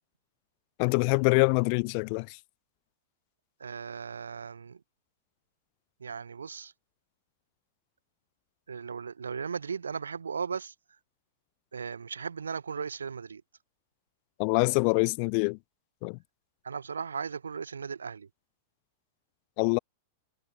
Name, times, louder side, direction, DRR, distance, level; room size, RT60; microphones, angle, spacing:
voice 1, 0.8-2.4 14.4-15.6 16.0-16.2 19.6-19.8, left 40 dB or more, 50° left, 5.9 m, -25 dB
voice 2, 3.6-4.8 6.0-6.7 8.7-10.7 11.7-13.4 16.6-18.3, right 6 dB, 85° right, 6.5 m, -37 dB
hypercardioid pair, 100°, 0 cm